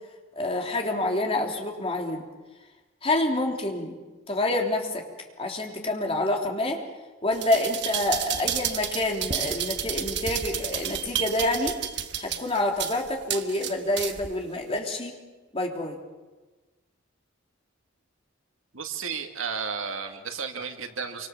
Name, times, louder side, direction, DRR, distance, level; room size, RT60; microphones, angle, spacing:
voice 1, 0.3-2.2 3.0-4.0 4.3-5.0 5.4-6.8 7.2-11.8 12.2-15.2 15.5-16.0, left 1 dB, 30° left, 1 dB, 3.3 m, -27 dB
sound 1, 7.3-14.3 14.8-14.9, right 9 dB, 55° right, 1.4 m, -31 dB
voice 2, 18.7-21.3, right 6 dB, 80° right, 5 dB, 2.3 m, -33 dB
27.5 x 25.0 x 7.3 m, 1.2 s
head